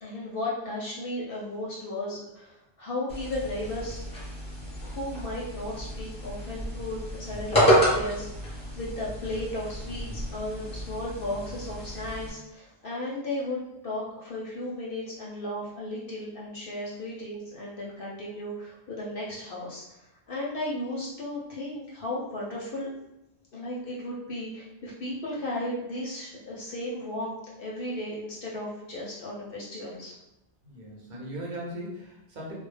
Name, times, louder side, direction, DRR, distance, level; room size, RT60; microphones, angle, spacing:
voice 1, 0.0-4.0 4.8-20.0 20.3-22.9 23.5-30.1, left 1 dB, 60° left, -5 dB, 0.7 m, -35 dB
sound 1, 3.1-12.3, equal, 5° left, 0.8 m, -29 dB
voice 2, 30.6-32.5, right 1 dB, 50° right, -3 dB, 0.7 m, -38 dB
2.1 x 2.0 x 3.2 m, 0.93 s
omnidirectional pair, 1.1 m